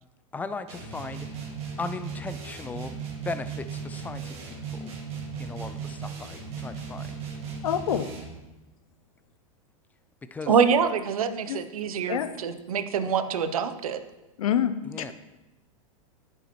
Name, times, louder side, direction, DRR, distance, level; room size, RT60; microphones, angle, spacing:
voice 1, 0.3-1.3 1.8-2.9 3.2-4.9 5.4-7.1 10.3-10.5 14.8-15.1, left 4 dB, 10° left, 12 dB, 0.3 m, -37 dB
sound 1, 0.7-8.4, right 6 dB, 35° right, 2.0 m, -37 dB
voice 2, 7.6-8.1 10.5-10.6 11.5-11.6 12.1-12.3 14.4-15.1, left 9 dB, 80° left, 12 dB, 0.7 m, -27 dB
voice 3, 10.5-14.0, right 6 dB, 90° right, 11 dB, 0.7 m, -25 dB
9.9 x 6.7 x 3.0 m, 1.0 s
hypercardioid pair, 120°, 18 cm